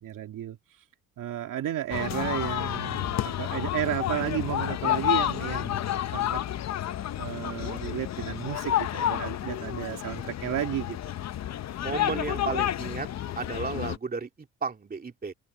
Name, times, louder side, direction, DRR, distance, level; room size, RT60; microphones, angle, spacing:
voice 1, 0.0-0.6 1.2-6.4 7.2-11.0, right 11 dB, 70° right, 2.5 m, -33 dB
sound 1, 1.9-14.0, left 12 dB, 55° left, 0.8 m, -30 dB
voice 2, 11.8-13.1 13.3-14.3 14.6-15.3, right 4 dB, 25° right, 2.7 m, -33 dB
cardioid pair, 95°, 33 cm